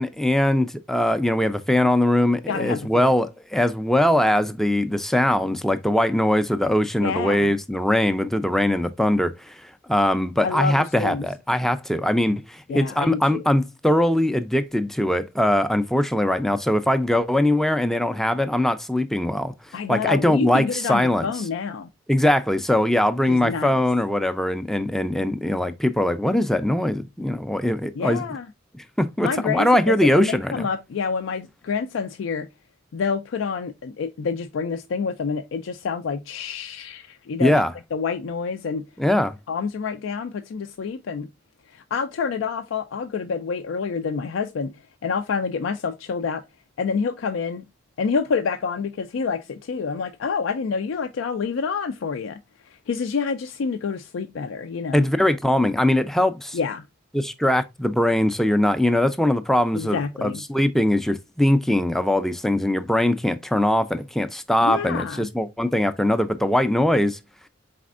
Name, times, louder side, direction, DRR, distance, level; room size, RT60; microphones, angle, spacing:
voice 1, 0.0-9.6 9.9-19.5 19.9-21.3 22.1-28.2 28.7-30.7 37.4-37.7 39.0-39.4 54.9-56.6 57.1-67.2, left 1 dB, ahead, 0.3 m, -21 dB
voice 2, 2.5-3.1 7.0-7.5 10.4-11.3 12.7-13.4 19.7-21.9 23.3-23.8 27.9-28.5 29.2-32.5 32.9-37.6 37.9-38.8 39.5-41.3 41.7-44.7 45.0-46.4 46.8-47.7 48.0-52.4 52.7-55.1 56.5-56.9 59.7-60.4 64.6-65.3, left 5 dB, 80° left, 0.4 m, -27 dB
4.2 x 4.2 x 2.4 m
head